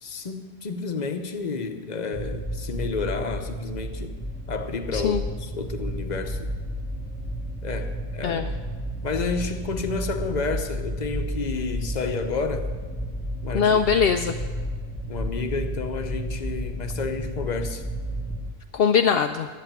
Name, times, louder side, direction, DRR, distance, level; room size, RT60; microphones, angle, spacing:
voice 1, 0.0-4.2 4.5-6.5 7.6-8.5 9.0-12.7 13.4-13.8 15.1-17.8, left 4 dB, 45° left, 6 dB, 1.0 m, -30 dB
sound 1, 2.1-18.5, equal, 10° left, 0.7 m, -32 dB
voice 2, 13.5-14.3 18.7-19.5, left 6 dB, 70° left, 6 dB, 0.7 m, -21 dB
11.0 x 8.1 x 9.0 m, 1.5 s
omnidirectional pair, 1.1 m